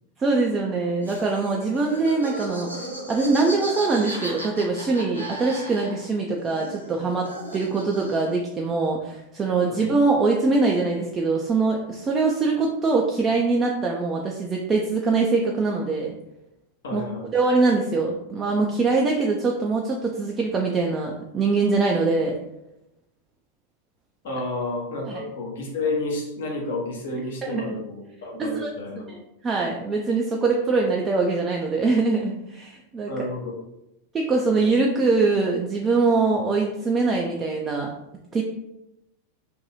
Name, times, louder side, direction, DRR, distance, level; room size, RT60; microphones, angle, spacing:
voice 1, 0.2-2.7 3.1-16.1 16.9-17.0 17.3-22.3 25.1-25.2 27.4-27.8 28.4-28.7 29.0-29.2 29.4-33.1 34.1-37.9 38.3-38.4, right 3 dB, 20° right, -1 dB, 0.3 m, -23 dB
Laughter, 1.0-6.2 6.5-8.4, right 1 dB, 90° right, 0.6 m, -36 dB
voice 2, 16.8-17.3 24.2-29.0 33.1-33.5, left 2 dB, 60° left, 0 dB, 0.7 m, -30 dB
2.6 x 2.2 x 2.9 m, 0.88 s
figure-of-eight pair, 90°, 0 cm